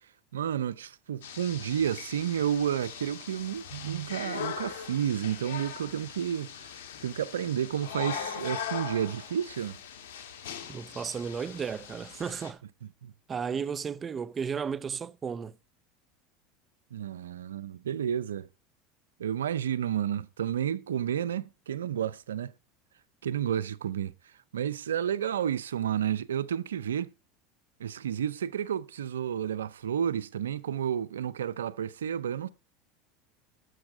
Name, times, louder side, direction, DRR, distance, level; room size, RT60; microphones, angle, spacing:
voice 1, 0.3-6.7 7.0-9.8 13.0-13.1 16.9-18.5 19.2-22.5 23.2-24.1 24.5-27.1 27.8-32.5, right 9 dB, 90° right, 0.6 m, -31 dB
sound 1, 1.2-12.5, left 8 dB, 80° left, 1.6 m, -40 dB
voice 2, 10.7-12.6 13.3-15.5, right 6 dB, 30° right, 0.7 m, -34 dB
11.0 x 7.2 x 4.8 m
hypercardioid pair, 90°, 0 cm